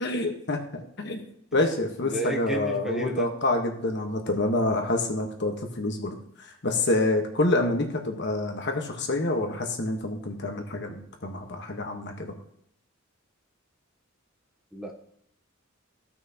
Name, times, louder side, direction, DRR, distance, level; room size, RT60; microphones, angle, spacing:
voice 1, 0.0-12.3, left 2 dB, 60° left, 4 dB, 1.3 m, -27 dB
voice 2, 2.0-3.3 14.7-14.9, right 1 dB, 5° right, 1 dB, 1.0 m, -31 dB
15.0 x 6.1 x 2.9 m, 0.71 s
head